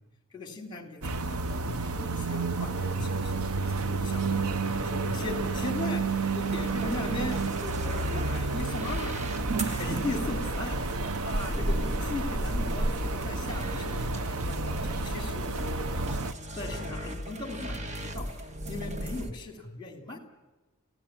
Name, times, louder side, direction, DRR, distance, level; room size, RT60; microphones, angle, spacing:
voice 1, 0.3-4.2 4.6-9.1 9.6-10.8 11.2-15.4 16.5-18.3 18.7-20.2, left 2 dB, 20° left, 4 dB, 3.2 m, -38 dB
sound 1, 1.0-16.3, right 3 dB, 80° right, 0.9 m, -31 dB
sound 2, 6.5-19.3, equal, 30° right, 1.4 m, -37 dB
28.0 x 17.0 x 7.5 m, 1.2 s
head